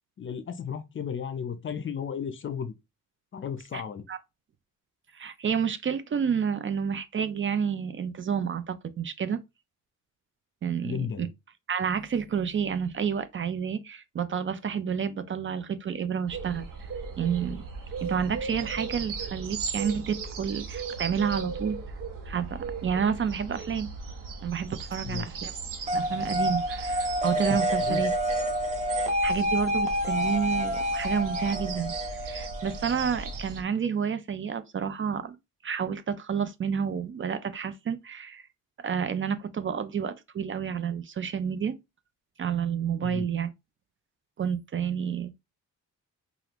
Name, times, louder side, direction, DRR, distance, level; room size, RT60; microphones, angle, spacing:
voice 1, 0.2-2.7 3.3-4.0 10.8-11.3 25.0-25.3 27.8-28.0 43.0-43.3, left 7 dB, 40° left, 0.5 m, -34 dB
voice 2, 5.1-9.4 10.6-11.3 11.7-16.9 17.2-17.6 18.0-21.8 22.3-23.9 24.4-25.5 25.9-28.1 29.2-35.4 35.6-38.4 38.8-41.8 42.4-43.5 44.4-45.4, right 7 dB, 40° right, 0.4 m, -30 dB
sound 1, 16.3-33.6, right 4 dB, 75° right, 1.1 m, -38 dB
sound 2, 25.9-33.4, equal, 20° right, 0.8 m, -28 dB
4.9 x 2.4 x 3.0 m
cardioid pair, 130°, 33 cm